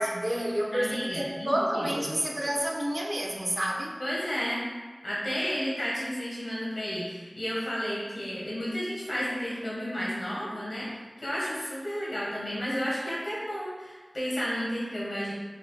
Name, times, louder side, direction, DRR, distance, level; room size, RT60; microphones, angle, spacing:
voice 1, 0.0-4.0, right 1 dB, 40° right, -1 dB, 0.6 m, -29 dB
voice 2, 0.7-2.1 4.0-4.6 5.0-15.3, equal, 75° left, -6 dB, 1.3 m, -32 dB
4.8 x 3.4 x 2.3 m, 1.4 s
wide cardioid pair, 55°, 0 cm